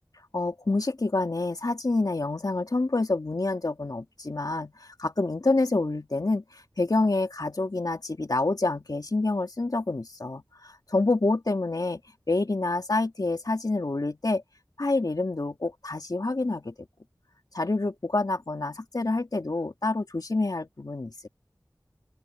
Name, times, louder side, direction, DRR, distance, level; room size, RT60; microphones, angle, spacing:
voice 1, 0.3-12.0 12.3-14.4 14.8-16.7 17.5-21.1, left 2 dB, 65° left, 2.2 m, -27 dB
open air
wide cardioid pair, 50°, 7 cm